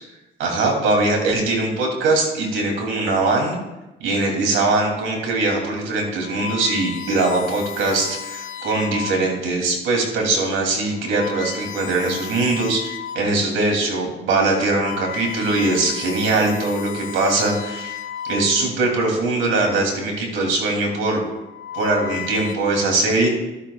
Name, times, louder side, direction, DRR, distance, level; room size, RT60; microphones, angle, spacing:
voice 1, 0.4-3.6 4.0-18.0 18.3-21.2 21.7-23.3, right 2 dB, 90° right, 1 dB, 3.0 m, -21 dB
sound 1, 6.1-9.5 10.1-10.4 10.9-13.4 13.8-14.0 14.5-18.9 19.9-20.3 21.2-22.5, left 9 dB, 75° left, 0.8 m, -34 dB
14.5 x 11.5 x 2.4 m, 1.0 s
cardioid pair, 90°, 20 cm